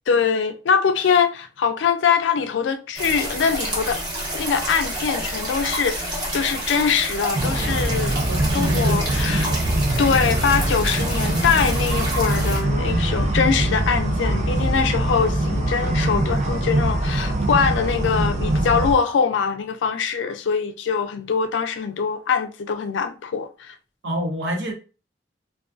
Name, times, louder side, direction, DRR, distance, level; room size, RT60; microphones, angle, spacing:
voice 1, 0.1-4.0 4.3-8.2 8.5-9.5 10.0-23.8, left 6 dB, 90° left, 0.4 m, -23 dB
sound 1, 3.0-12.6, right 1 dB, 25° right, 0.9 m, -29 dB
sound 2, 7.3-18.9, right 1 dB, 40° right, 0.4 m, -23 dB
voice 2, 8.1-9.6 24.0-24.7, equal, 90° right, 0.8 m, -28 dB
2.4 x 2.2 x 2.3 m
head